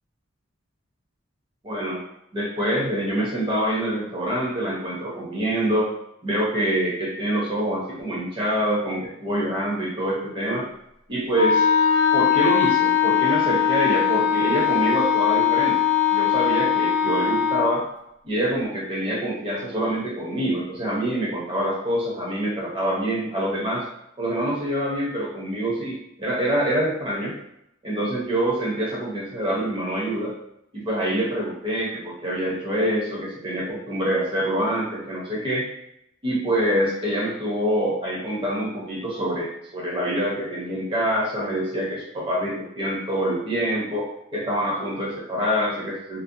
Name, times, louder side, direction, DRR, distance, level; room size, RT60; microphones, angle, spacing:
voice 1, 1.6-2.0 2.3-5.9 6.2-10.6 11.1-11.6 12.1-15.8 16.1-17.9 18.2-23.9 24.2-27.4 27.8-30.4 30.7-35.6 36.2-46.2, right 1 dB, 25° right, -5 dB, 0.6 m, -25 dB
Wind instrument woodwind instrument, 11.3-17.7, left 8 dB, 75° left, 0.5 m, -20 dB
2.5 x 2.1 x 2.6 m, 0.78 s
head